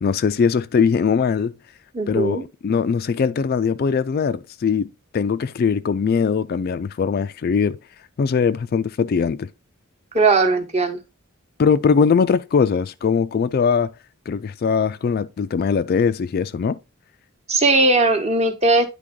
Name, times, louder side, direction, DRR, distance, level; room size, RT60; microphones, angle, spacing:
voice 1, 0.0-1.5 2.1-7.8 8.2-9.5 11.6-13.9 14.3-16.8, left 6 dB, 45° left, 0.3 m, -21 dB
voice 2, 1.9-2.4 10.1-11.0 17.5-18.9, right 2 dB, 30° right, 1.0 m, -18 dB
10.0 x 3.5 x 3.7 m
head